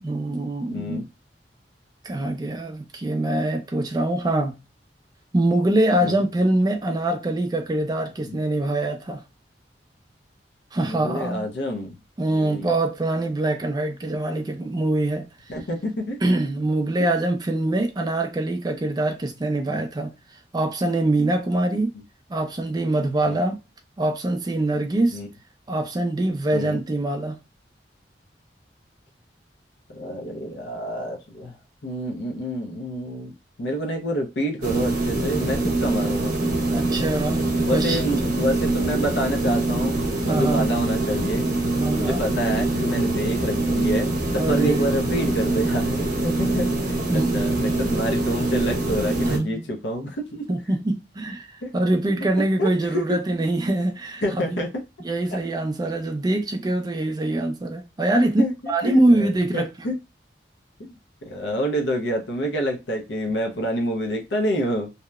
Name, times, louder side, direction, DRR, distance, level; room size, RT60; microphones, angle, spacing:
voice 1, 0.0-1.0 2.0-4.6 5.3-9.2 10.7-11.5 12.2-15.3 16.2-20.1 20.5-21.9 22.3-23.6 24.0-25.2 25.7-27.4 36.7-38.0 40.3-40.8 41.7-42.2 44.4-45.3 47.1-47.4 49.2-49.7 50.5-54.6 55.0-59.7, right 1 dB, 25° right, 0.4 m, -24 dB
voice 2, 0.7-1.0 6.0-6.2 8.3-8.4 10.8-12.0 12.3-12.7 15.5-16.2 23.2-23.4 25.1-25.3 26.5-26.8 29.9-31.6 31.8-33.3 33.6-36.3 37.7-41.5 42.0-44.1 44.3-46.8 47.1-50.5 51.6-51.7 52.6-53.2 54.2-54.7 55.3-55.4 58.4-58.5 58.8-60.0 60.8-60.9 61.2-64.9, equal, 75° left, 0.6 m, -27 dB
sound 1, 34.6-49.4, right 2 dB, 50° right, 0.7 m, -24 dB
2.8 x 2.0 x 2.2 m
head